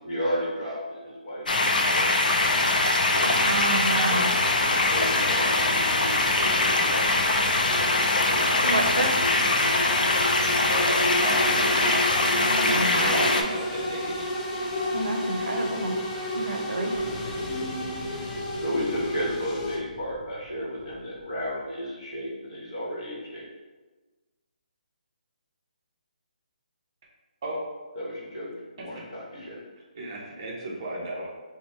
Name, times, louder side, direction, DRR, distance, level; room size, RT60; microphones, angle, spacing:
voice 1, 0.0-2.7 3.0-3.4 3.9-7.3 18.6-23.4 28.0-28.5 28.8-29.6, equal, 40° left, -6 dB, 1.1 m, -33 dB
sound 1, 1.5-13.4, left 2 dB, 75° left, 0.4 m, -23 dB
sound 2, 2.4-19.8, left 1 dB, 15° left, 0.3 m, -33 dB
voice 2, 3.2-4.3 8.6-9.1 12.2-13.5 14.9-16.0 16.3-17.0, right 2 dB, 85° right, 3 dB, 0.6 m, -29 dB
voice 3, 8.2-9.2 10.7-11.9 12.2-14.3 27.4-27.6 29.9-31.3, right 1 dB, 30° right, -4 dB, 0.6 m, -35 dB
sound 3, 16.9-21.6, equal, 5° right, 1.2 m, -43 dB
3.0 x 2.1 x 4.0 m, 1.3 s
hypercardioid pair, 170°, 5 cm